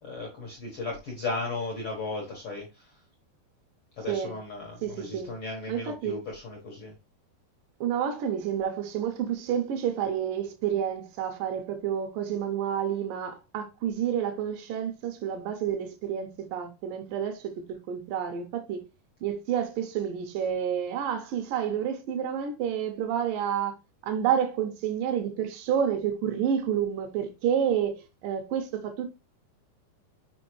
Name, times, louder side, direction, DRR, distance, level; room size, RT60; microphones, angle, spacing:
voice 1, 0.0-2.9 4.0-6.9, left 3 dB, 85° left, 1.2 m, -36 dB
voice 2, 4.1-4.4 4.8-5.3 5.7-6.2 7.8-18.8 19.2-23.7 24.0-29.1, right 8 dB, 80° right, 2.0 m, -29 dB
6.2 x 5.0 x 3.1 m
omnidirectional pair, 4.9 m